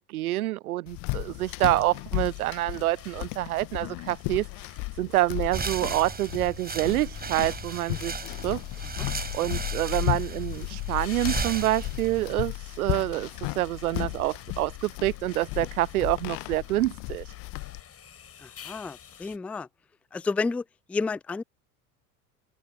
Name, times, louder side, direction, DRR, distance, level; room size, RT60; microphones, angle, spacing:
voice 1, 0.0-4.5 4.9-8.6 9.3-17.3, right 16 dB, 65° right, 0.6 m, -27 dB
sound 1, 0.9-17.8, left 27 dB, 45° left, 1.3 m, -34 dB
sound 2, 1.7-19.4, left 8 dB, 30° left, 7.4 m, -51 dB
sound 3, 5.5-12.4, right 5 dB, 20° right, 7.8 m, -36 dB
voice 2, 18.4-19.7 20.1-21.4, left 4 dB, 5° left, 0.4 m, -31 dB
figure-of-eight pair, 70°, 48 cm